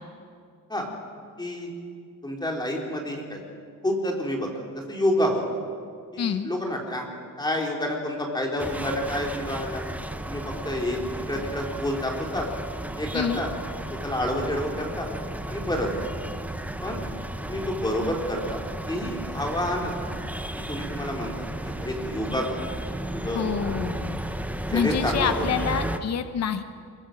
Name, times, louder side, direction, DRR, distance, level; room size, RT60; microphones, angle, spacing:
voice 1, 1.4-1.7 2.2-3.4 3.8-5.4 6.1-7.1 7.4-9.8 10.3-11.0 11.3-12.5 13.0-13.5 13.9-15.1 15.5-16.1 16.8-17.0 17.4-18.6 18.9-20.1 20.7-22.6 23.1-23.5 24.7-25.6, left 1 dB, 10° left, 0 dB, 3.7 m, -29 dB
voice 2, 6.2-6.5 13.1-13.4 23.3-24.2 24.7-26.6, left 7 dB, 50° left, 9 dB, 1.0 m, -27 dB
sound 1, 8.6-26.0, right 1 dB, 5° right, 0.9 m, -34 dB
sound 2, 12.7-23.8, right 1 dB, 20° right, 7.1 m, -48 dB
23.5 x 22.5 x 7.8 m, 2.2 s
wide cardioid pair, 170°, 35 cm